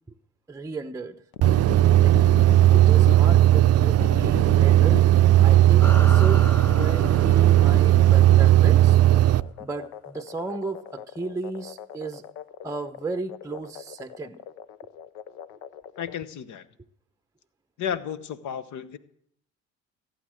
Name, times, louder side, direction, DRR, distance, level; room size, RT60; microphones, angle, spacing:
voice 1, 0.5-1.2 2.0-2.2 2.7-5.1 5.4-9.0 9.6-12.2 12.6-14.4, right 3 dB, 10° right, 10 dB, 0.7 m, -34 dB
sound 1, 1.3-16.1, left 11 dB, 85° left, 0.8 m, -38 dB
sound 2, 1.4-9.4, right 14 dB, 50° right, 0.5 m, -17 dB
sound 3, 5.8-8.6, equal, 5° left, 1.1 m, -37 dB
voice 2, 16.0-16.7 17.8-19.0, left 8 dB, 65° left, 14 dB, 1.0 m, -32 dB
15.5 x 8.3 x 7.6 m, 0.69 s
supercardioid pair, 65°, 32 cm